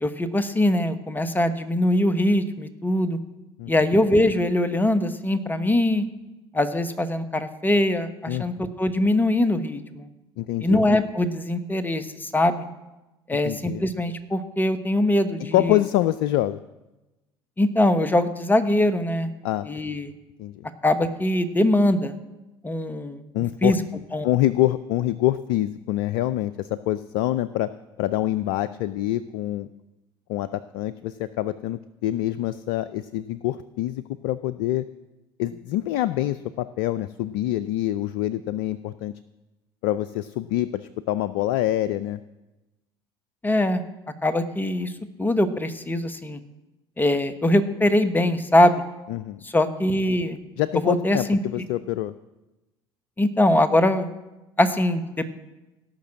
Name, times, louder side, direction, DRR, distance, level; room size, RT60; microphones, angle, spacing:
voice 1, 0.0-3.2 3.7-6.1 6.5-10.1 10.6-12.7 13.3-15.8 17.6-19.3 19.6-20.1 20.8-22.2 22.6-23.2 23.6-23.8 24.1-24.3 43.4-43.8 44.2-44.9 45.2-46.4 47.0-48.8 49.4-50.4 50.8-51.4 53.2-54.1 54.6-55.2, left 1 dB, 15° left, 10 dB, 1.2 m, -22 dB
voice 2, 8.3-8.7 10.4-10.9 13.4-13.8 15.5-16.6 19.4-19.7 20.4-20.7 23.3-23.7 24.2-27.7 28.0-29.7 30.3-34.8 35.4-39.1 39.8-42.2 49.1-49.4 50.6-52.1, left 14 dB, 65° left, 15 dB, 0.4 m, -25 dB
16.5 x 5.9 x 7.5 m, 1.0 s
hypercardioid pair, 65°, 13 cm